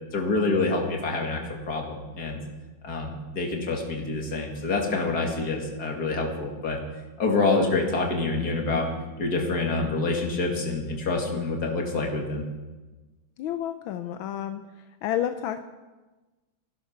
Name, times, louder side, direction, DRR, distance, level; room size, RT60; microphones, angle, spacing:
voice 1, 0.1-1.4 1.7-2.4 2.8-6.8 7.2-8.9 9.2-12.4, left 3 dB, 50° left, 1 dB, 2.7 m, -26 dB
voice 2, 13.4-14.6 15.0-15.6, left 11 dB, 85° left, 8 dB, 1.5 m, -30 dB
15.5 x 12.0 x 6.0 m, 1.2 s
omnidirectional pair, 2.1 m